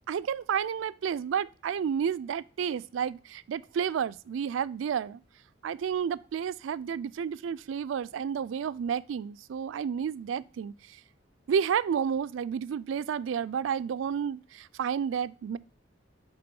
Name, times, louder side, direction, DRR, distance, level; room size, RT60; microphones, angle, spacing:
voice 1, 0.1-5.2 5.6-11.0 11.5-15.6, right 7 dB, 85° right, 0.3 m, -31 dB
5.9 x 3.9 x 5.2 m
head